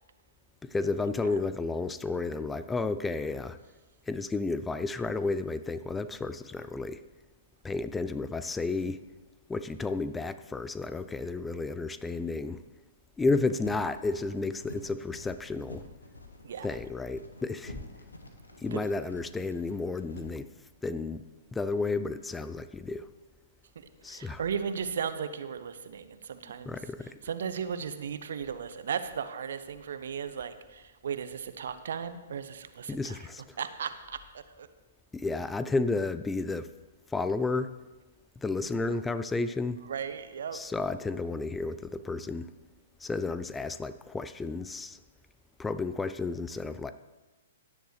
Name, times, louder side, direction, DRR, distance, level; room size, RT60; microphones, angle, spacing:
voice 1, 0.6-3.6 4.1-7.0 7.6-9.0 9.5-12.6 13.2-15.9 16.6-17.8 18.6-20.5 20.8-21.2 21.5-23.1 24.0-24.4 26.7-27.2 32.9-33.6 35.1-36.7 37.1-37.7 38.4-39.8 40.5-42.5 43.0-45.0 45.6-46.9, left 3 dB, 10° left, 12 dB, 0.4 m, -32 dB
sound 1, 13.4-20.3, left 1 dB, 80° left, 1.6 m, -48 dB
voice 2, 23.7-33.3 33.6-34.7 39.9-40.6, right 7 dB, 60° right, 11 dB, 0.9 m, -36 dB
16.5 x 10.5 x 3.2 m, 1.2 s
figure-of-eight pair, 115°, 0 cm